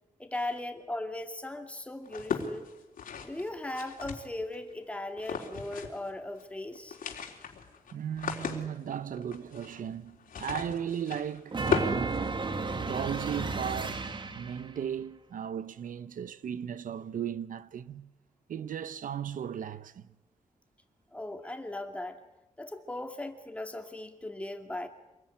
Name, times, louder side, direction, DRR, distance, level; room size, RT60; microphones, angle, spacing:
voice 1, 0.2-2.7 3.2-7.0 21.1-22.2 22.6-24.9, left 1 dB, 10° left, 2.4 m, -38 dB
sound 1, 2.1-4.6 5.2-6.1 6.3-6.4 6.7-12.9, left 6 dB, 80° left, 3.8 m, -37 dB
voice 2, 7.9-12.3 12.8-14.1 14.3-18.1 18.5-20.1, right 8 dB, 75° right, 0.9 m, -36 dB
sound 2, 11.5-14.7, right 3 dB, 35° right, 2.0 m, -33 dB
27.0 x 21.0 x 9.9 m
wide cardioid pair, 150°, 14 cm